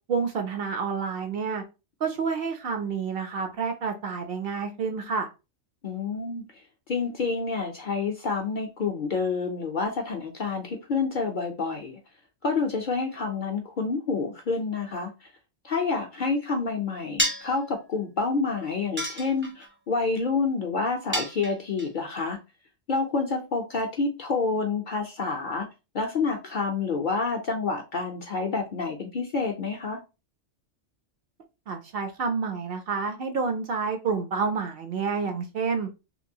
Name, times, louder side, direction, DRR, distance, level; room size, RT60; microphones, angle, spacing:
voice 1, 0.1-1.6 2.0-5.3 31.7-35.9, right 5 dB, 60° right, 0.7 m, -29 dB
voice 2, 5.8-6.4 6.9-12.0 12.4-15.3 15.6-22.4 22.9-25.7 25.9-30.0, left 4 dB, 60° left, 0.6 m, -28 dB
sound 1, 17.2-17.6 19.0-19.7 21.1-21.9, right 1 dB, 15° right, 0.5 m, -29 dB
2.9 x 2.5 x 2.7 m
omnidirectional pair, 1.2 m